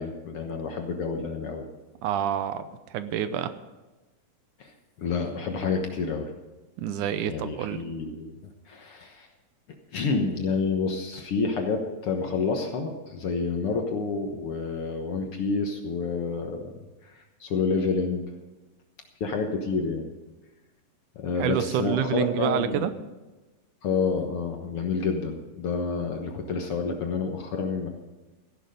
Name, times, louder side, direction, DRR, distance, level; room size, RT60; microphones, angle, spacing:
voice 1, 0.0-1.7 4.6-4.7 5.0-6.3 7.3-8.4 8.7-9.3 9.9-16.7 17.0-18.2 19.2-20.1 21.2-22.9 23.8-27.9, left 4 dB, 55° left, 4 dB, 1.8 m, -29 dB
voice 2, 2.0-3.5 6.8-7.8 21.4-22.9, right 10 dB, 80° right, 12 dB, 2.2 m, -28 dB
15.5 x 11.0 x 5.2 m, 1.1 s
omnidirectional pair, 3.6 m